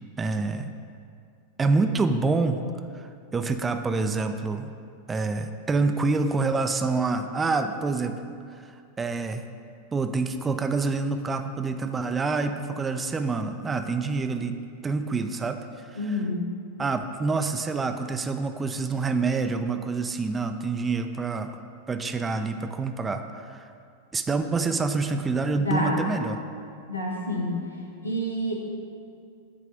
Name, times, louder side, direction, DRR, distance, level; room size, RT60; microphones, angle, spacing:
voice 1, 0.2-0.7 1.6-2.6 2.9-4.7 5.1-8.2 8.6-9.4 9.9-14.6 14.8-16.2 16.8-21.5 21.9-23.7 24.1-26.4, right 4 dB, 15° right, 8 dB, 0.3 m, -27 dB
voice 2, 15.9-16.5 25.5-26.1 26.9-27.6 28.0-28.5, left 1 dB, 90° left, -2 dB, 1.1 m, -28 dB
8.6 x 3.3 x 5.0 m, 2.3 s
figure-of-eight pair, 90°, 0 cm